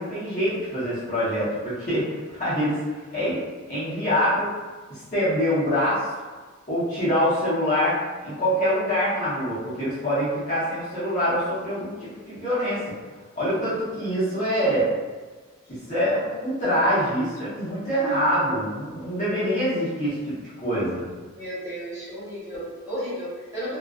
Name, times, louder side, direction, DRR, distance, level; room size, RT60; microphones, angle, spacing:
voice 1, 0.0-2.8 3.1-3.4 3.7-4.5 4.9-6.1 6.7-12.8 13.3-14.9 15.7-21.0, equal, 35° left, -10 dB, 0.8 m, -25 dB
voice 2, 21.3-23.8, equal, 15° right, -12 dB, 1.1 m, -33 dB
2.3 x 2.3 x 2.3 m, 1.4 s
head